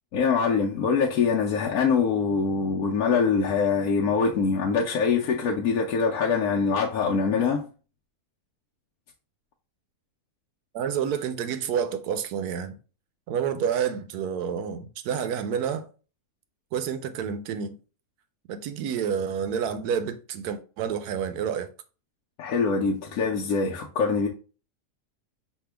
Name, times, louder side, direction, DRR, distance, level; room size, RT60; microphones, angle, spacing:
voice 1, 0.1-7.6 22.4-24.3, left 5 dB, 75° left, 1.1 m, -24 dB
voice 2, 10.7-12.7 13.3-15.9 16.7-17.7 18.5-21.7, right 8 dB, 85° right, 1.2 m, -29 dB
5.4 x 2.8 x 3.3 m
omnidirectional pair, 1.6 m